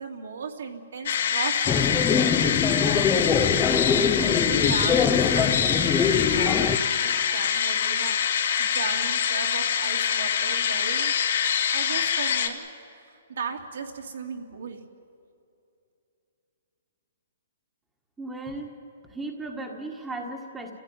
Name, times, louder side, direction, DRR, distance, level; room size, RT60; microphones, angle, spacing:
voice 1, 0.0-3.1 4.1-5.6 5.9-11.1 11.7-12.7 13.0-14.8, right 5 dB, 70° right, 2 dB, 2.8 m, -37 dB
sound 1, 1.1-12.5, left 8 dB, 60° left, 2.3 m, -25 dB
sound 2, 1.7-6.8, left 6 dB, 10° left, 0.7 m, -23 dB
voice 2, 18.2-18.7 19.1-20.7, right 2 dB, 5° right, 1 dB, 1.6 m, -35 dB
29.5 x 15.5 x 9.4 m, 2.7 s
hypercardioid pair, 170°, 0 cm